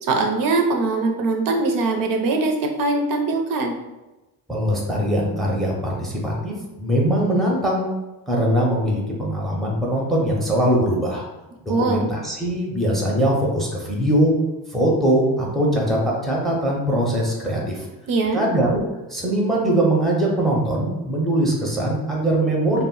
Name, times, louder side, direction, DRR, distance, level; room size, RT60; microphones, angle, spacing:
voice 1, 0.0-3.7 11.7-12.1 18.1-18.4, right 3 dB, 55° right, 3 dB, 0.4 m, -21 dB
voice 2, 4.5-7.9 8.3-11.2 11.6-14.4 14.7-17.8 18.3-18.8 19.1-22.8, right 1 dB, ahead, -2 dB, 0.5 m, -21 dB
2.1 x 2.0 x 3.6 m, 1.0 s
cardioid pair, 110°, 42 cm